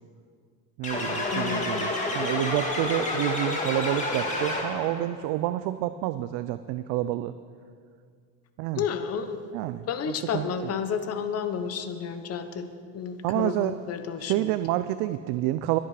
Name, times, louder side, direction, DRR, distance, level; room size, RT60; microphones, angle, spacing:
sound 1, 0.8-5.0, left 2 dB, 15° left, 2.0 m, -29 dB
voice 1, 0.8-7.3 8.6-8.8 9.5-10.7 13.2-13.7 14.2-15.8, right 14 dB, 70° right, 12 dB, 0.6 m, -29 dB
voice 2, 1.3-1.9 8.8-9.4 9.9-12.7 12.9-14.5, left 7 dB, 35° left, 9 dB, 1.0 m, -31 dB
22.0 x 8.2 x 4.9 m, 2.1 s
cardioid pair, 150°, 42 cm